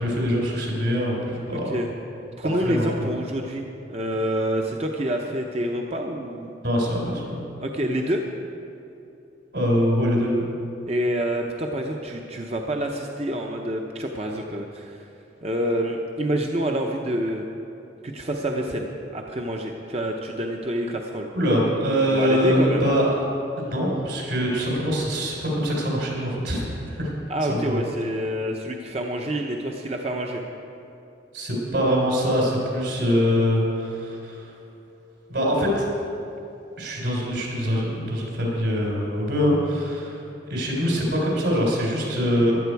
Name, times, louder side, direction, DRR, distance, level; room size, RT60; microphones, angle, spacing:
voice 1, 0.0-1.8 2.4-3.1 6.6-7.4 9.5-10.4 21.3-23.2 23.6-27.1 27.5-27.8 31.3-34.5 35.3-35.9 36.8-40.2 40.5-42.6, equal, 70° right, -2 dB, 3.7 m, -23 dB
voice 2, 2.4-6.5 7.6-8.2 10.9-15.1 15.4-17.5 18.0-21.3 22.1-22.9 27.3-30.4 41.0-41.1, right 1 dB, 35° right, 2 dB, 0.7 m, -27 dB
15.0 x 11.5 x 4.7 m, 2.8 s
head